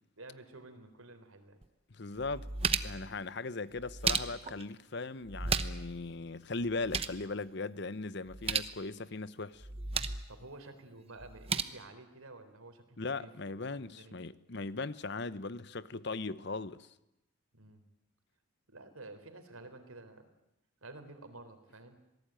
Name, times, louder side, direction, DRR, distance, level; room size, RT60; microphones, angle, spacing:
voice 1, 0.2-1.6 2.1-2.3 10.3-13.3 13.7-14.2 17.5-17.8 18.7-20.3 20.8-22.0, right 2 dB, 90° right, 4.0 m, -51 dB
sound 1, 1.6-1.7 2.2-3.1 3.8-4.6 5.3-5.9 6.2-6.3 6.6-7.2 8.3-8.7 9.6-10.3 11.2-11.6, right 5 dB, 30° right, 0.9 m, -34 dB
voice 2, 1.9-2.5 2.8-9.7 13.0-16.9, left 3 dB, 55° left, 0.9 m, -38 dB
26.5 x 19.0 x 9.0 m
head